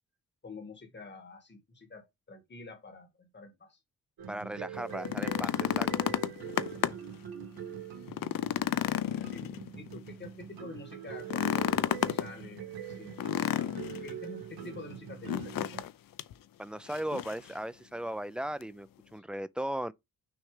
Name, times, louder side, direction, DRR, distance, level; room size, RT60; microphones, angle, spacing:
voice 1, 0.4-3.8 9.1-12.7 13.0-13.2 14.0-15.9 19.1-19.2, left 3 dB, 30° left, 1.9 m, -47 dB
sound 1, 4.2-15.8, right 8 dB, 85° right, 2.2 m, -43 dB
voice 2, 4.3-6.1 16.6-19.9, right 1 dB, 5° right, 0.3 m, -37 dB
sound 2, 4.9-7.2 7.6-7.7 8.1-10.0 11.2-12.3 13.2-14.1 15.3-15.9 16.2-16.3 16.9-17.5 18.6-18.7, left 12 dB, 65° left, 0.6 m, -31 dB
6.3 x 3.2 x 4.9 m
cardioid pair, 110°, 36 cm